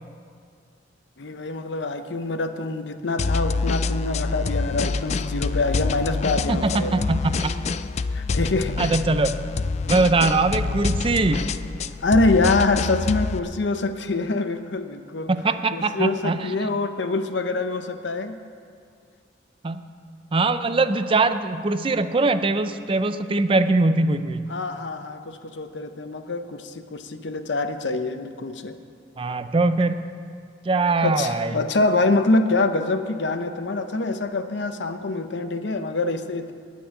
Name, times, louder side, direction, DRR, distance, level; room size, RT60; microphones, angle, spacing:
voice 1, 1.2-7.0 8.1-8.8 12.0-15.3 15.7-18.4 24.5-28.8 31.0-36.5, left 3 dB, 75° left, 9 dB, 0.8 m, -25 dB
sound 1, 3.2-13.4, left 4 dB, 35° left, 0.3 m, -26 dB
voice 2, 6.5-7.5 8.8-9.4 9.9-11.4 15.3-16.5 19.6-19.8 20.3-24.5 29.2-30.0 30.7-31.5, right 3 dB, 30° right, 11 dB, 0.4 m, -22 dB
9.4 x 9.2 x 9.4 m, 2.2 s
head